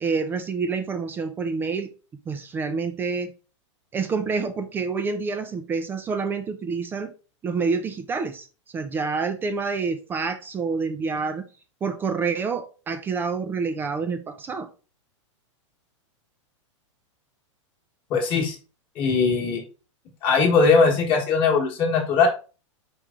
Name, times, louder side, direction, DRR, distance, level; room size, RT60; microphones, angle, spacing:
voice 1, 0.0-1.9 2.3-3.3 3.9-7.1 7.4-8.5 8.7-11.5 11.8-14.7, right 4 dB, 15° right, 8 dB, 0.3 m, -27 dB
voice 2, 18.1-18.6 19.0-19.6 20.2-22.3, left 4 dB, 30° left, 1 dB, 1.1 m, -20 dB
4.6 x 3.1 x 3.6 m, 0.34 s
supercardioid pair, 150°, 16 cm